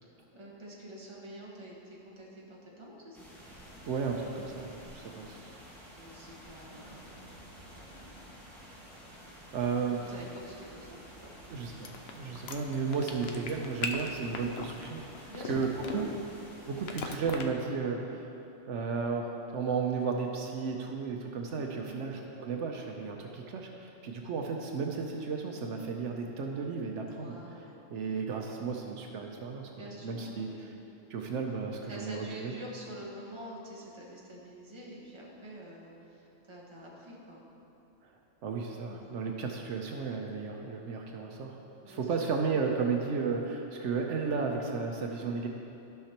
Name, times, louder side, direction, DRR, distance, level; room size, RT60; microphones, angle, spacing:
voice 1, 0.0-3.2 5.9-7.5 7.7-8.1 9.9-11.3 15.3-16.1 21.8-22.1 27.1-27.8 29.7-30.8 31.9-37.4 38.9-39.1 41.8-42.4, equal, 25° right, -4 dB, 1.2 m, -47 dB
sound 1, 3.1-17.2, equal, ahead, 1.7 m, -51 dB
voice 2, 3.9-5.4 9.5-10.0 11.5-16.1 16.7-18.3 18.7-27.4 27.9-30.5 31.1-32.5 38.0-38.1 38.4-41.6 41.9-45.5, right 5 dB, 80° right, 2 dB, 1.0 m, -34 dB
sound 2, 11.8-16.3 16.9-17.4, left 5 dB, 65° left, 0.8 m, -37 dB
14.0 x 5.8 x 2.9 m, 2.9 s
omnidirectional pair, 1.2 m